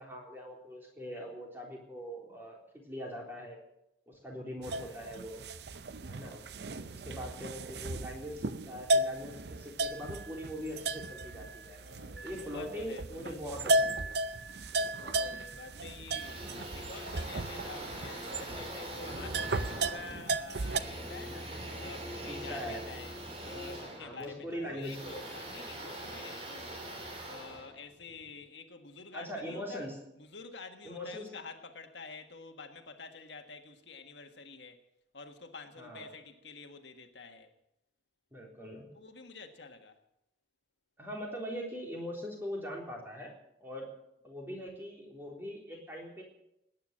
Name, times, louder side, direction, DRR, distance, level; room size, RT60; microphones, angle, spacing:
voice 1, 0.0-3.6 4.1-5.4 6.1-6.5 6.8-11.8 12.2-14.2 14.7-15.2 22.3-22.8 24.0-25.2 29.1-30.0 30.8-31.3 35.8-36.1 38.3-38.9 41.0-43.3 43.6-43.9 44.2-46.2, equal, 10° right, 3.7 m, -42 dB
sound 1, 4.6-20.8, right 2 dB, 65° right, 0.6 m, -35 dB
voice 2, 4.7-5.1 11.8-13.6 14.9-23.1 23.4-26.8 27.3-29.9 30.2-34.8 35.1-37.5 38.9-40.0, left 4 dB, 80° left, 1.7 m, -48 dB
sound 2, 16.1-28.3, right 1 dB, 30° right, 3.4 m, -42 dB
19.0 x 9.5 x 7.5 m
head